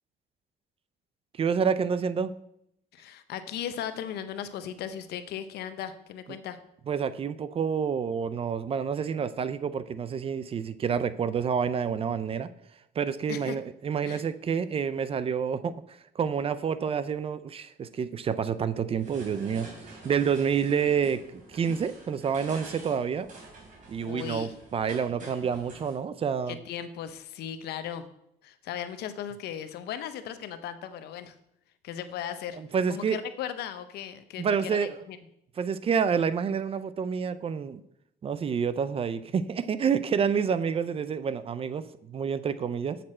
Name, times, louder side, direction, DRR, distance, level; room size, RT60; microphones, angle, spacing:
voice 1, 1.3-2.3 6.3-6.4 6.9-12.5 13.0-21.2 21.5-23.3 23.9-26.6 32.6-33.2 34.4-35.0 35.6-37.8 38.2-43.0, right 7 dB, 35° right, 14 dB, 0.4 m, -28 dB
voice 2, 2.9-6.6 13.3-13.6 14.0-14.2 24.0-24.5 26.5-28.0 28.4-31.3 31.8-32.6 32.9-35.2, left 9 dB, 75° left, 10 dB, 0.8 m, -37 dB
sound 1, 18.9-25.9, right 2 dB, 50° right, 3.3 m, -47 dB
7.6 x 6.7 x 4.3 m, 0.77 s
cardioid pair, 110°, 17 cm